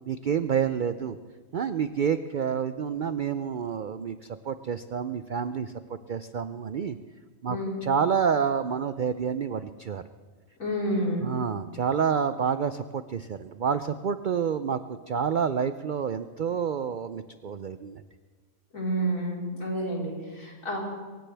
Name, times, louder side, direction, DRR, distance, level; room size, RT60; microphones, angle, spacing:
voice 1, 0.1-1.2 1.5-7.0 7.4-10.0 11.2-14.8 15.1-18.0, right 7 dB, 65° right, 11 dB, 0.4 m, -28 dB
voice 2, 10.6-11.3 18.7-20.8, right 1 dB, 75° left, -4 dB, 4.8 m, -29 dB
23.5 x 17.0 x 3.4 m, 1.4 s
omnidirectional pair, 1.4 m